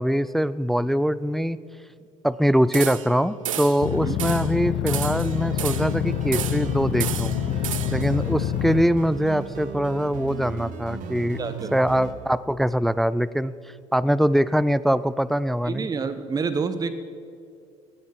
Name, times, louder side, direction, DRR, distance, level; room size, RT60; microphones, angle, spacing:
voice 1, 0.0-1.6 2.2-7.3 7.9-11.4 11.7-13.5 13.9-15.9, equal, ahead, 18 dB, 0.3 m, -23 dB
sound 1, 2.7-3.2 3.4-3.8 4.2-4.5 4.9-6.0 6.3-6.7 7.0-8.1, right 10 dB, 80° right, 0.6 m, -31 dB
sound 2, 3.8-8.8, left 11 dB, 50° left, 0.6 m, -27 dB
sound 3, 5.0-12.1, right 5 dB, 50° right, 1.4 m, -36 dB
voice 2, 11.4-11.7 15.6-16.9, right 5 dB, 20° right, 12 dB, 0.8 m, -28 dB
17.0 x 8.9 x 6.0 m, 2.4 s
figure-of-eight pair, 55°, 17 cm